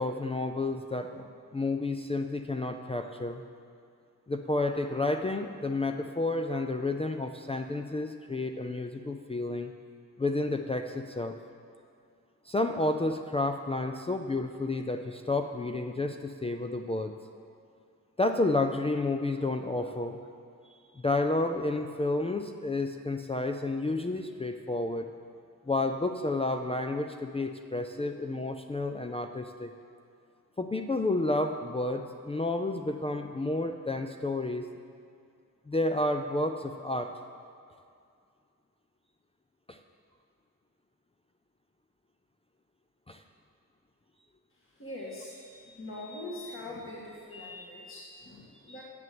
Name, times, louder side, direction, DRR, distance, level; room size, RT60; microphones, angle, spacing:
voice 1, 0.0-3.4 4.3-9.7 10.2-11.3 12.5-17.1 18.2-20.2 20.9-25.1 25.7-29.7 30.6-34.7 35.7-37.1 39.7-39.8 43.1-43.2, left 2 dB, 15° left, 5 dB, 0.4 m, -30 dB
voice 2, 44.5-48.8, left 1 dB, 35° left, -5 dB, 2.0 m, -43 dB
10.5 x 7.8 x 7.7 m, 2.3 s
wide cardioid pair, 110°, 35 cm